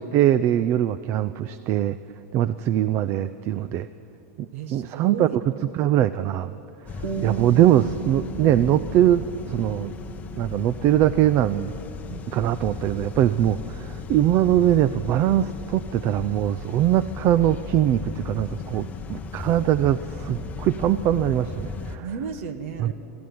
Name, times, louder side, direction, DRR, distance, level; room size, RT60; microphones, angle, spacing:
voice 1, 0.0-2.0 2.3-3.9 4.7-5.3 5.6-6.5 7.2-9.9 10.4-11.7 12.3-22.1 22.8-22.9, right 12 dB, 35° right, 15 dB, 0.4 m, -22 dB
voice 2, 4.5-5.4 12.1-12.3 22.0-22.9, right 7 dB, 60° right, 9 dB, 1.4 m, -34 dB
sound 1, 6.9-22.0, left 5 dB, 20° left, 1.0 m, -36 dB
sound 2, 7.0-12.0, right 6 dB, 85° right, 3.0 m, -36 dB
23.5 x 14.0 x 9.4 m, 3.0 s
supercardioid pair, 150°, 8 cm